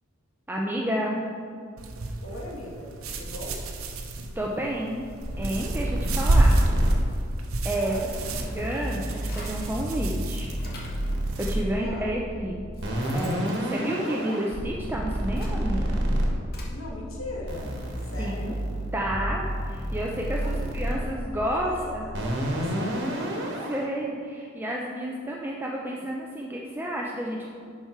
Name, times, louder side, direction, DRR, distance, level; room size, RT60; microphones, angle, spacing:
voice 1, 0.5-1.2 4.4-5.1 5.4-6.6 7.6-8.0 8.5-10.5 11.4-12.6 13.1-16.0 18.2-18.5 18.9-22.1 23.3-27.5, right 1 dB, 10° right, -2 dB, 0.5 m, -30 dB
sound 1, 1.8-11.6, right 1 dB, 75° right, 0.8 m, -29 dB
voice 2, 2.2-3.6 7.7-8.3 11.8-12.2 16.6-17.7 18.0-18.6 20.4-21.1 21.4-23.4, left 1 dB, 70° left, -2 dB, 1.8 m, -40 dB
sound 2, 5.2-23.8, equal, 55° right, 1.5 m, -30 dB
sound 3, 8.0-9.8 10.2-11.1 11.9-12.0 12.5-14.6 15.1-16.8, left 2 dB, 50° left, 1.4 m, -47 dB
11.0 x 4.7 x 4.4 m, 2.3 s
head